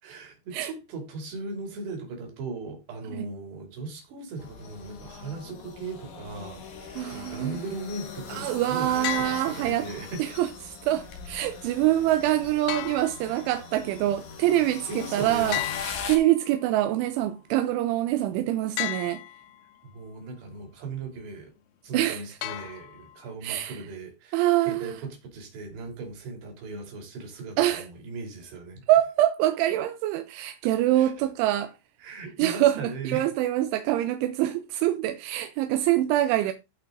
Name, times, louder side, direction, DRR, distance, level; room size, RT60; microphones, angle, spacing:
voice 1, 0.0-10.3 13.2-13.4 14.9-15.6 19.8-21.5 21.8-28.8 31.0-31.1 32.0-33.3, right 3 dB, 55° right, 4.8 m, -38 dB
sound 1, 4.4-16.2, left 6 dB, 60° left, 2.1 m, -41 dB
voice 2, 7.0-7.6 8.3-9.9 10.2-19.2 21.9-22.3 23.4-23.8 24.3-24.9 27.6-27.9 28.9-31.7 32.4-36.5, right 14 dB, 80° right, 2.9 m, -25 dB
sound 2, 9.0-10.1 12.7-13.8 15.5-16.8 18.8-19.7 22.4-23.3, left 17 dB, 85° left, 3.4 m, -35 dB
15.0 x 5.7 x 3.8 m
omnidirectional pair, 5.9 m